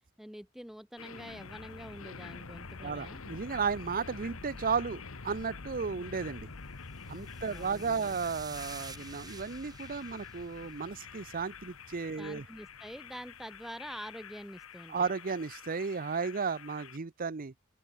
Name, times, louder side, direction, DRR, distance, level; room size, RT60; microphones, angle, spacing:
voice 1, 0.2-3.2 7.4-8.2 12.2-15.1, equal, ahead, 0.4 m, -46 dB
sound 1, 1.0-17.0, left 4 dB, 80° left, 1.3 m, -47 dB
voice 2, 2.8-6.5 7.1-12.5 14.9-17.5, right 5 dB, 45° right, 0.7 m, -34 dB
sound 2, 6.9-11.4, right 5 dB, 20° right, 1.6 m, -51 dB
open air
head